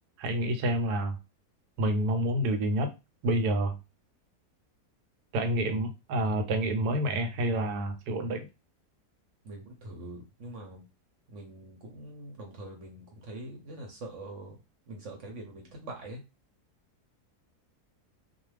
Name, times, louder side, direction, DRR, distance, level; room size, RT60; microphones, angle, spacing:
voice 1, 0.2-1.2 1.8-2.9 3.2-3.8 5.3-8.5, right 1 dB, 80° right, 6 dB, 1.1 m, -28 dB
voice 2, 9.4-10.8 11.3-14.6 14.9-16.2, right 2 dB, 60° right, 1 dB, 0.9 m, -43 dB
2.4 x 2.3 x 3.1 m, 0.26 s
omnidirectional pair, 1.7 m